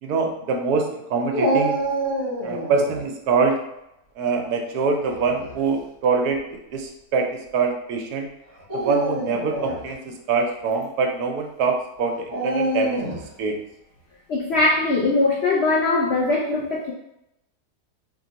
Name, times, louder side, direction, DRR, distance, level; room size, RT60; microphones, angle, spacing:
voice 1, 0.0-1.8 2.4-3.6 4.2-8.3 8.7-13.0 13.4-13.6, right 4 dB, 70° right, 3 dB, 1.1 m, -24 dB
Dog, 1.3-3.0 5.1-5.6 6.3-6.4 8.6-9.8 12.3-13.3, right 1 dB, 30° right, 1.4 m, -26 dB
voice 2, 14.3-16.9, left 2 dB, 80° left, -2 dB, 0.5 m, -21 dB
3.1 x 3.0 x 3.9 m, 0.85 s
omnidirectional pair, 1.8 m